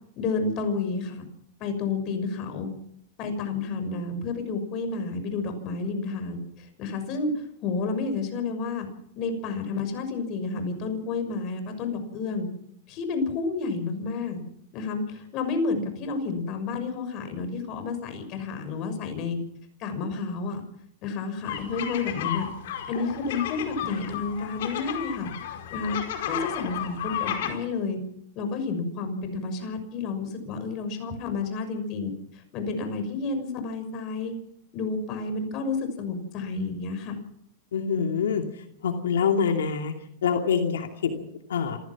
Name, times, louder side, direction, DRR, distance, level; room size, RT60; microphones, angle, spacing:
voice 1, 0.2-1.3 1.6-2.7 3.2-8.9 9.2-12.5 12.9-14.4 14.7-19.4 19.8-20.6 21.0-22.5 22.9-25.3 25.7-28.0 28.4-34.3 34.7-37.2, left 4 dB, 35° left, 7 dB, 6.2 m, -30 dB
sound 1, 21.4-27.5, left 10 dB, 65° left, 4.9 m, -33 dB
voice 2, 37.7-38.4 38.8-39.9 40.2-41.8, left 6 dB, 90° left, 4 dB, 2.6 m, -25 dB
27.0 x 16.0 x 6.1 m, 0.74 s
supercardioid pair, 145°, 0 cm